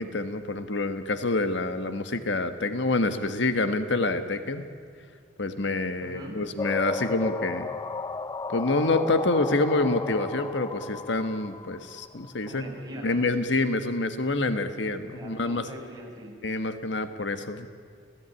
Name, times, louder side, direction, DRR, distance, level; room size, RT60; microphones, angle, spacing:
voice 1, 0.0-4.6 5.4-7.7 8.5-12.7 13.0-15.7 16.4-17.7, left 2 dB, 70° left, 10 dB, 1.6 m, -27 dB
voice 2, 6.0-6.4 12.4-13.3 14.8-16.4, equal, 20° right, -2 dB, 7.0 m, -42 dB
sound 1, 6.6-12.3, left 4 dB, 20° left, 0.6 m, -34 dB
30.0 x 18.5 x 9.9 m, 2.2 s
head